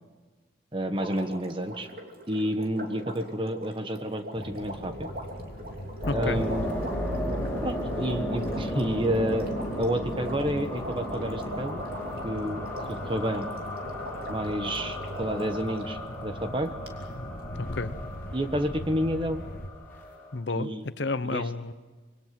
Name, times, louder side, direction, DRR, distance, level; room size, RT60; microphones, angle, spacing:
voice 1, 0.7-1.9 2.3-5.1 6.1-6.7 7.6-11.8 12.2-13.5 14.3-16.7 18.3-19.4 20.5-20.9 21.2-21.4, equal, 25° right, 8 dB, 1.3 m, -30 dB
Water, 0.9-15.9 16.9-17.0, right 1 dB, 50° right, 3.0 m, -41 dB
sound 1, 4.3-19.7, left 1 dB, 50° left, 1.4 m, -41 dB
voice 2, 6.0-6.4 17.6-18.0 20.3-20.7 21.0-21.7, left 3 dB, 65° left, 13 dB, 0.8 m, -30 dB
sound 2, 6.0-20.3, left 1 dB, 10° left, 6.1 m, -35 dB
26.0 x 22.5 x 6.0 m, 1.3 s
head